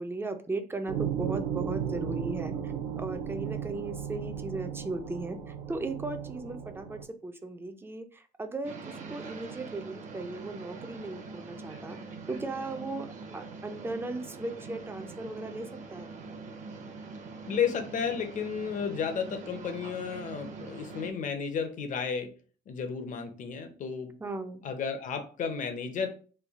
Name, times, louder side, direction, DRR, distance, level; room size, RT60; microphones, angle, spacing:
voice 1, 0.0-8.8 9.1-12.0 12.3-13.1 13.3-15.6 15.9-16.2 24.2-24.6, right 2 dB, 15° right, 7 dB, 0.5 m, -37 dB
sound 1, 0.9-7.0, right 8 dB, 80° right, 0.6 m, -35 dB
sound 2, 8.6-21.1, right 4 dB, 45° right, 0.7 m, -43 dB
voice 2, 17.5-22.3 22.7-24.1 24.6-26.1, left 6 dB, 50° left, 7 dB, 0.7 m, -32 dB
3.3 x 2.3 x 3.5 m, 0.40 s
cardioid pair, 110°, 17 cm